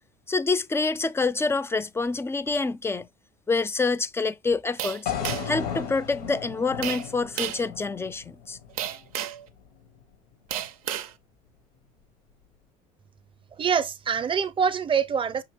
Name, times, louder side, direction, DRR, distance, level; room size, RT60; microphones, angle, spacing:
voice 1, 0.3-3.1 3.5-5.1 5.5-8.6, left 3 dB, 15° left, 0.3 m, -27 dB
sound 1, 4.8-5.6 6.8-7.1 7.4-7.7 8.8-9.5 10.5-11.1, right 10 dB, 90° right, 0.5 m, -32 dB
sound 2, 5.1-9.2, left 8 dB, 85° left, 0.9 m, -35 dB
voice 2, 13.6-15.4, right 6 dB, 30° right, 0.6 m, -25 dB
5.8 x 2.8 x 3.0 m
hypercardioid pair, 85°, 18 cm